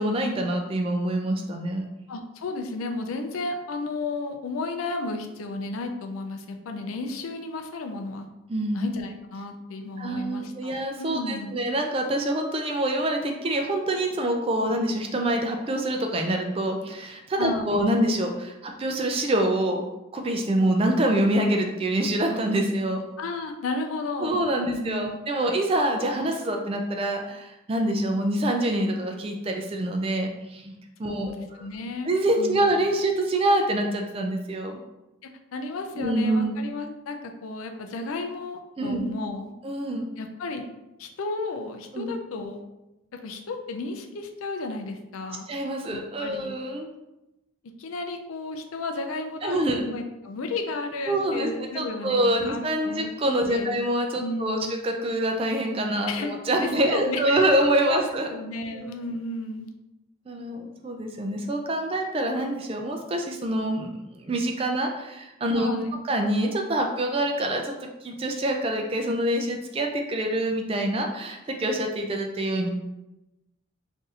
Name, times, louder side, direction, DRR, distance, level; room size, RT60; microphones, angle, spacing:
voice 1, 0.0-1.9 8.5-8.8 10.0-19.8 20.1-23.0 24.2-31.7 32.1-34.8 36.0-36.6 38.8-39.1 39.6-40.1 41.9-42.1 45.5-46.9 49.4-49.9 51.1-54.6 54.8-58.3 58.7-58.9 60.3-63.9 64.2-65.7 66.1-72.7, right 1 dB, 25° right, 3 dB, 0.3 m, -26 dB
voice 2, 2.1-8.3 8.7-11.6 17.4-17.8 23.2-25.2 31.0-32.1 32.4-32.7 35.2-39.5 40.2-40.6 41.0-42.6 43.1-45.5 45.9-46.6 47.8-53.1 53.5-53.8 54.2-54.7 56.1-56.3 56.6-57.5 57.9-58.0 58.3-59.7 65.5-66.0, left 3 dB, 90° left, 5 dB, 0.4 m, -33 dB
2.6 x 2.5 x 4.0 m, 0.97 s
head